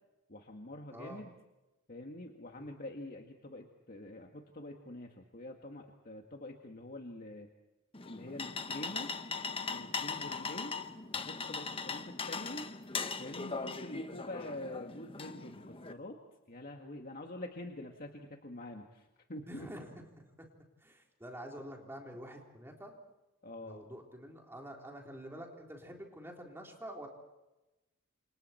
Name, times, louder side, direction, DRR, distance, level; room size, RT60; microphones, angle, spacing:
voice 1, 0.3-1.3 1.9-7.5 8.1-9.1 9.7-10.8 11.1-12.7 13.2-16.2 16.5-19.7 23.4-23.9, left 1 dB, 45° left, 2 dB, 2.0 m, -46 dB
voice 2, 0.9-1.2 2.5-2.8 10.1-10.3 19.5-20.0 20.8-23.0 23.6-27.1, equal, 10° right, 1 dB, 3.8 m, -47 dB
sound 1, 7.9-15.9, left 4 dB, 25° left, 1.1 m, -39 dB
29.0 x 28.0 x 4.5 m, 1.0 s
head